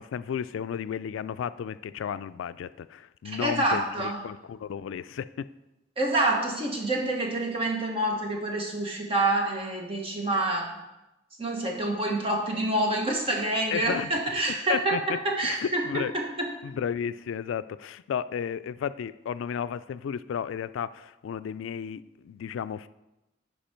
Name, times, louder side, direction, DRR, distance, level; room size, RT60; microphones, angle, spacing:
voice 1, 0.0-5.3 13.7-14.1 14.7-15.0 15.4-16.1 16.6-22.9, left 8 dB, 85° left, 15 dB, 0.3 m, -33 dB
voice 2, 3.2-4.2 6.0-10.7 11.4-16.5, right 2 dB, 30° right, 1 dB, 1.3 m, -27 dB
10.5 x 5.0 x 4.4 m, 0.97 s
head